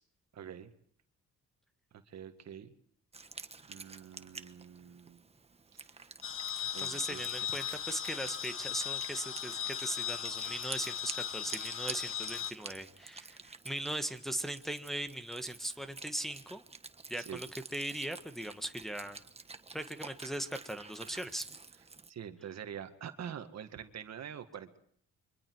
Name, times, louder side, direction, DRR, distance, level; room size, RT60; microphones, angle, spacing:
voice 1, 0.3-0.7 2.1-2.7 3.7-5.2 5.7-6.1 6.7-7.7 17.2-17.4 22.1-24.8, right 8 dB, 60° right, 8 dB, 1.9 m, -46 dB
Wind instrument woodwind instrument, 3.1-22.1, right 4 dB, 20° right, 1.3 m, -49 dB
sound 1, 6.2-12.5, left 10 dB, 45° left, 1.6 m, -38 dB
voice 2, 6.8-16.6 17.1-19.2 19.7-21.5, right 1 dB, ahead, 6 dB, 1.5 m, -39 dB
28.5 x 24.0 x 4.7 m, 0.64 s
cardioid pair, 90°, 30 cm